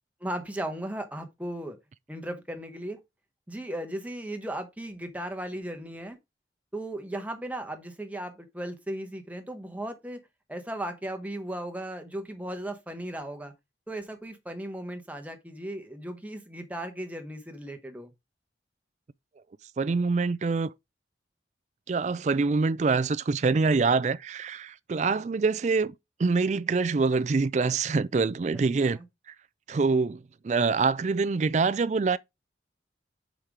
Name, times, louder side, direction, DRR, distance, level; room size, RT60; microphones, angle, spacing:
voice 1, 0.2-1.8 2.1-3.0 3.5-6.2 6.7-10.2 10.5-13.5 13.9-18.1 28.5-29.0, right 1 dB, 10° right, 1.0 m, -36 dB
voice 2, 19.8-20.7 21.9-25.9 26.2-29.0 29.7-32.2, right 4 dB, 40° right, 0.3 m, -25 dB
5.7 x 5.1 x 4.6 m
head